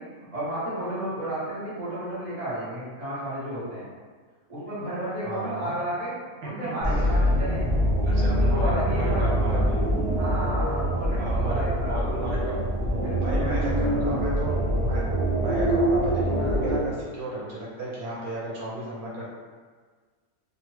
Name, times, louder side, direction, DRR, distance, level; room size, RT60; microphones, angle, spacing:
voice 1, 0.0-3.8 4.5-6.1 6.4-7.7 8.2-9.6 10.1-12.0 12.9-14.1, right 1 dB, 25° right, -11 dB, 1.2 m, -32 dB
voice 2, 5.2-5.7 6.4-6.5 7.0-7.1 8.0-9.8 11.1-12.6 13.2-15.0 15.3-19.3, right 2 dB, 80° right, -6 dB, 1.2 m, -34 dB
sound 1, 6.8-16.8, equal, 45° right, 0.5 m, -24 dB
2.7 x 2.3 x 3.0 m, 1.5 s
omnidirectional pair, 1.6 m